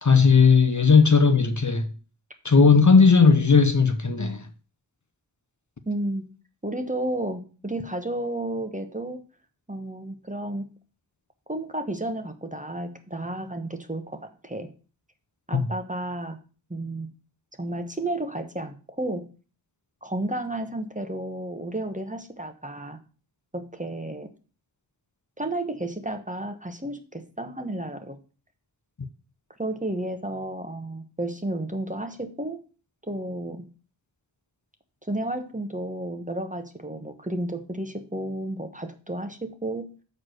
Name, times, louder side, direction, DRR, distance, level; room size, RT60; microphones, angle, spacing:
voice 1, 0.0-1.9 2.4-4.5 15.5-15.7, left 5 dB, 40° left, 0.8 m, -17 dB
voice 2, 5.9-6.3 6.6-9.2 9.7-10.7 11.5-14.7 15.5-16.4 16.7-17.1 17.6-19.3 20.0-23.0 23.5-24.3 25.4-28.2 29.6-32.6 33.1-33.7 35.1-39.9, right 1 dB, 15° right, 1.0 m, -32 dB
6.6 x 4.7 x 6.2 m
wide cardioid pair, 50°, 45 cm